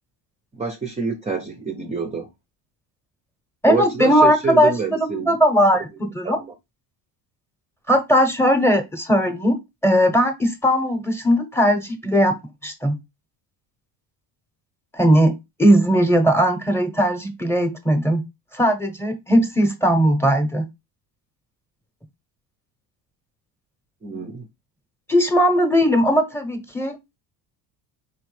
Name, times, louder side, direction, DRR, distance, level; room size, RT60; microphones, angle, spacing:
voice 1, 0.5-2.3 3.7-5.4 6.2-6.5 24.0-24.5, right 5 dB, 15° right, 0.6 m, -27 dB
voice 2, 3.6-6.4 7.9-9.6 9.8-12.4 12.6-13.0 14.9-15.3 15.6-18.2 18.5-20.6 25.1-27.0, equal, 5° left, 0.9 m, -18 dB
4.6 x 3.2 x 3.2 m
cardioid pair, 120°, 44 cm